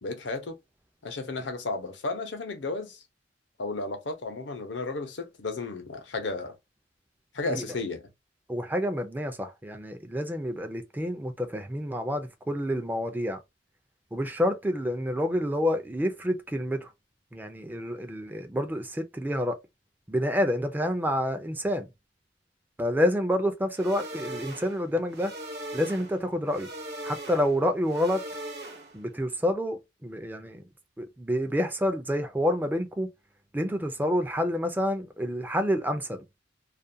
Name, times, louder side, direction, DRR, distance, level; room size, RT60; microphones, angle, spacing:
voice 1, 0.0-0.6 1.0-3.0 3.6-6.5 7.3-8.0, left 3 dB, 80° left, 0.7 m, -33 dB
voice 2, 8.5-13.4 14.1-16.9 17.3-19.6 20.1-21.9 22.8-25.3 25.7-26.7 27.0-28.2 28.9-30.6 31.0-33.1 33.5-36.2, equal, 10° right, 0.4 m, -28 dB
sound 1, 23.7-29.1, right 1 dB, 60° right, 0.9 m, -40 dB
2.4 x 2.2 x 2.6 m
head